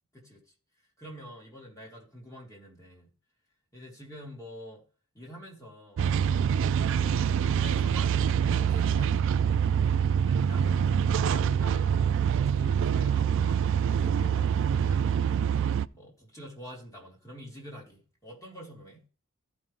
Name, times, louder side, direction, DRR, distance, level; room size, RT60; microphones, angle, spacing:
voice 1, 1.0-3.1 3.7-4.8 5.1-6.0 6.8-9.3 10.2-15.4 15.9-19.0, equal, 15° left, 3.1 m, -47 dB
sound 1, 6.0-15.9, right 8 dB, 60° right, 0.3 m, -25 dB
14.5 x 5.4 x 3.3 m
head